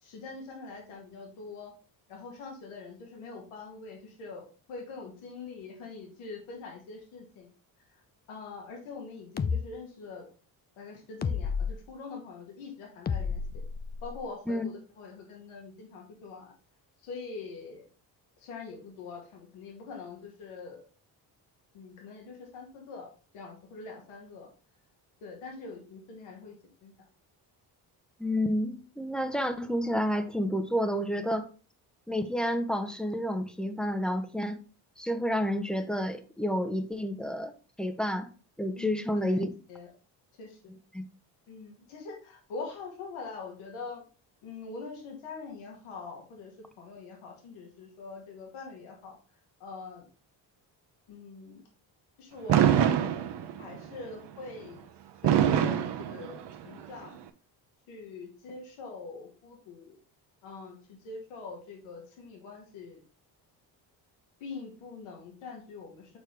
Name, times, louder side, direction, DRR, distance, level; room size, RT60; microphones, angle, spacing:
voice 1, 0.0-1.7 2.1-7.5 7.9-8.0 8.3-10.2 10.8-11.5 11.9-13.4 14.0-16.5 17.0-17.9 18.4-20.8 21.7-23.1 23.3-24.5 25.2-26.6 26.8-27.1 38.8-39.9 40.4-40.6 41.5-44.0 44.4-49.1 49.6-50.1 51.1-51.6 52.2-53.0 53.6-54.8 55.2-57.2 57.9-59.9 60.4-63.0 64.4-66.2, left 4 dB, 80° left, 2.0 m, -44 dB
sound 1, 9.4-9.6 11.2-11.7 13.1-14.2, left 6 dB, 20° left, 0.4 m, -31 dB
voice 2, 28.2-31.5 32.1-34.6 35.0-37.5 37.8-38.3 38.6-39.5 40.9-41.0, equal, ahead, 0.8 m, -30 dB
Fireworks, 52.5-53.8 55.2-56.8, right 9 dB, 55° right, 0.8 m, -24 dB
6.8 x 4.4 x 3.3 m
supercardioid pair, 60°, 50 cm